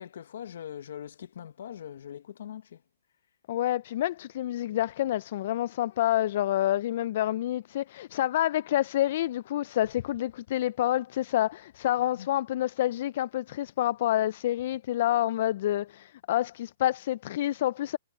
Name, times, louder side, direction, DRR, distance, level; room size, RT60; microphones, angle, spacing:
voice 1, 0.0-2.8 12.1-12.3, left 10 dB, 65° left, 0.9 m, -42 dB
voice 2, 3.5-18.0, left 13 dB, 45° left, 0.3 m, -28 dB
hypercardioid pair, 155°, 0 cm